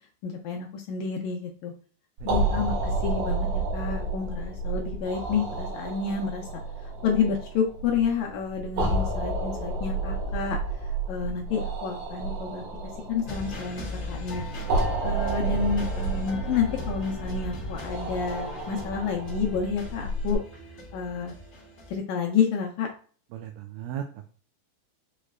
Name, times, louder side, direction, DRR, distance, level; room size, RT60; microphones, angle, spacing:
voice 1, 0.2-1.7 2.2-3.5 3.7-6.5 7.0-12.6 13.1-14.4 15.0-20.4 20.9-21.3 21.9-22.9, left 6 dB, 75° left, 1 dB, 1.9 m, -29 dB
sound 1, 2.2-20.4, right 3 dB, 65° right, 2.6 m, -31 dB
sound 2, 13.3-22.0, left 2 dB, 50° left, 0.9 m, -39 dB
voice 2, 23.3-24.3, right 10 dB, 85° right, 4 dB, 2.0 m, -37 dB
6.4 x 3.0 x 2.4 m, 0.42 s
omnidirectional pair, 3.6 m